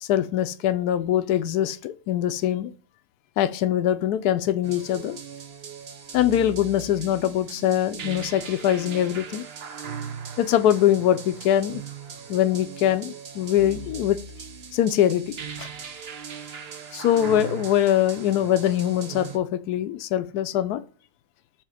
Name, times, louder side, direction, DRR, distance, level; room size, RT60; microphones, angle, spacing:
voice 1, 0.0-2.7 3.4-5.2 6.1-9.4 10.4-11.8 12.3-14.2 14.7-15.7 16.9-20.8, left 11 dB, 80° left, 1.1 m, -23 dB
sound 1, 4.6-19.4, right 6 dB, 50° right, 0.9 m, -39 dB
7.4 x 2.9 x 4.9 m
omnidirectional pair, 1.6 m